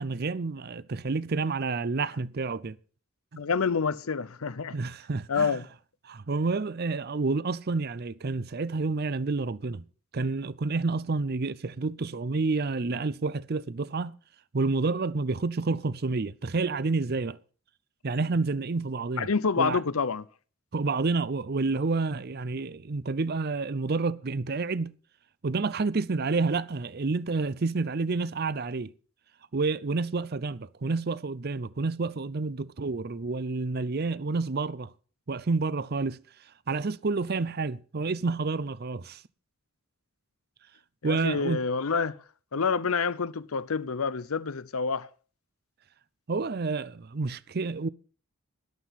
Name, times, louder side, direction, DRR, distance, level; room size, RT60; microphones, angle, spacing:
voice 1, 0.0-2.8 4.7-5.6 6.1-9.8 10.1-14.1 14.5-17.4 18.0-19.3 19.6-19.8 20.7-24.9 25.4-28.9 29.5-34.9 35.3-36.2 36.7-39.2 41.0-41.6 46.3-47.9, right 3 dB, 45° right, 0.6 m, -29 dB
voice 2, 3.4-4.8 5.3-5.6 19.2-20.2 41.0-42.2 42.5-45.1, left 5 dB, 80° left, 0.7 m, -28 dB
13.5 x 11.5 x 4.1 m
head